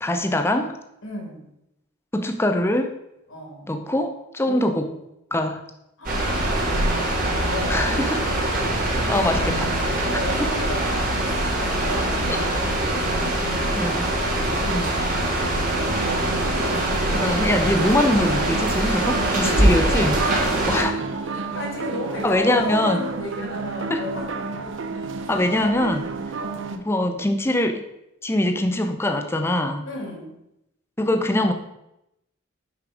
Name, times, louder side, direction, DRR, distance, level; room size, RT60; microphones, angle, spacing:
voice 1, 0.0-0.8 2.1-2.9 3.7-4.9 5.3-5.6 7.7-8.3 9.1-9.7 10.4-10.5 13.8-14.1 14.7-15.0 17.1-20.2 20.7-20.9 22.2-23.0 23.9-24.1 25.3-26.1 26.8-27.8 28.2-29.9 31.0-31.5, left 1 dB, 10° left, 6 dB, 0.5 m, -23 dB
voice 2, 1.0-1.5 3.3-3.7 4.4-5.0 6.0-7.2 7.5-7.9 8.4-9.7 10.1-14.7 15.3-15.8 19.4-20.6 21.5-24.8 26.4-26.8 29.8-30.4, left 1 dB, 75° left, 0 dB, 2.2 m, -35 dB
sound 1, 6.0-20.8, right 1 dB, 40° right, 1.7 m, -23 dB
sound 2, 15.8-26.8, right 4 dB, 70° right, 0.6 m, -31 dB
6.0 x 5.1 x 4.8 m, 0.85 s
head